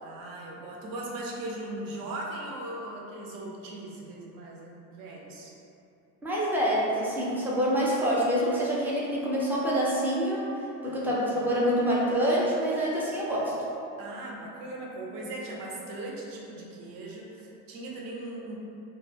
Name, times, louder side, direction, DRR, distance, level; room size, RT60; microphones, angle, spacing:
voice 1, 0.0-5.5 10.8-11.5 14.0-18.5, right 1 dB, 50° right, -3 dB, 0.6 m, -39 dB
voice 2, 6.2-10.5 10.8-13.5, equal, 5° right, -7 dB, 0.4 m, -26 dB
2.2 x 2.1 x 3.2 m, 2.7 s
supercardioid pair, 105°, 44 cm